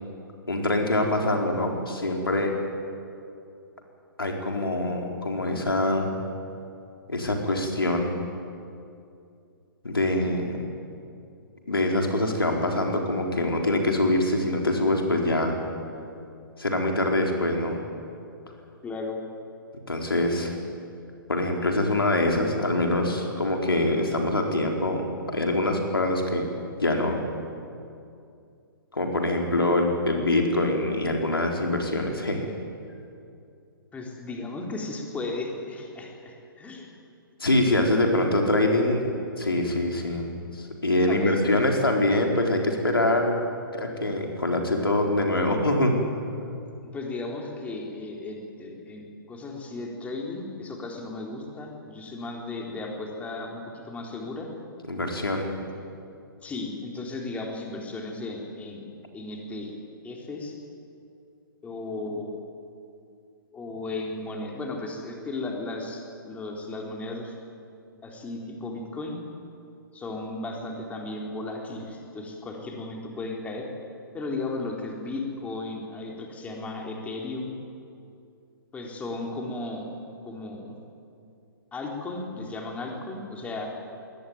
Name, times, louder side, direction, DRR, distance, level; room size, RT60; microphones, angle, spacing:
voice 1, 0.5-2.5 4.2-6.1 7.1-8.1 9.8-10.6 11.7-15.6 16.6-17.8 19.9-20.6 21.3-25.0 25.3-26.5 26.8-27.2 28.9-32.5 37.4-43.3 43.7-46.0 54.9-55.5, left 1 dB, 80° left, 2 dB, 4.3 m, -24 dB
voice 2, 18.8-19.2 29.6-29.7 33.9-36.9 41.0-41.7 46.9-54.5 56.4-58.9 59.1-59.7 60.0-60.5 61.6-62.4 63.5-67.3 68.0-69.2 69.9-73.7 74.1-77.6 78.7-79.9 80.3-80.8 81.7-83.7, left 2 dB, 10° left, 0 dB, 3.5 m, -35 dB
21.5 x 18.0 x 9.3 m, 2.5 s
figure-of-eight pair, 125°, 12 cm